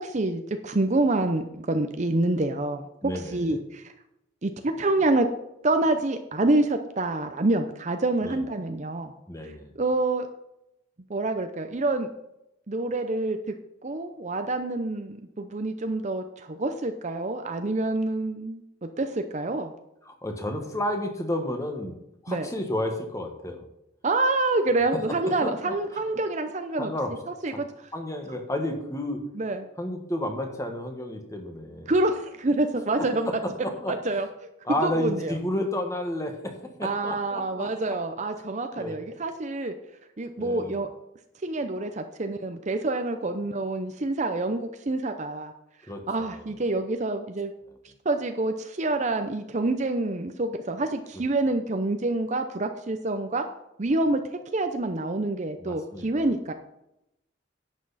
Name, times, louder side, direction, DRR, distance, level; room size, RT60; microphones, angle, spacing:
voice 1, 0.0-3.9 4.4-5.3 5.6-9.1 9.8-10.3 11.1-12.1 12.7-13.4 13.8-19.7 22.3-22.5 24.0-26.9 27.3-27.7 29.4-29.7 31.9-33.3 33.9-34.3 34.8-35.4 36.8-39.7 40.2-40.9 41.4-45.5 46.1-47.5 48.0-53.5 53.8-54.2 54.5-56.5, right 2 dB, 40° right, 7 dB, 0.6 m, -27 dB
voice 2, 3.0-3.6 8.2-8.4 9.3-9.7 20.0-21.9 22.2-23.6 24.9-25.7 26.8-27.1 27.5-27.6 27.9-29.2 29.8-31.9 33.3-33.9 34.6-37.7 38.8-39.0 40.4-40.8 45.9-46.4 55.6-56.3, left 1 dB, 15° left, 4 dB, 1.5 m, -31 dB
11.0 x 8.3 x 4.2 m, 0.85 s
head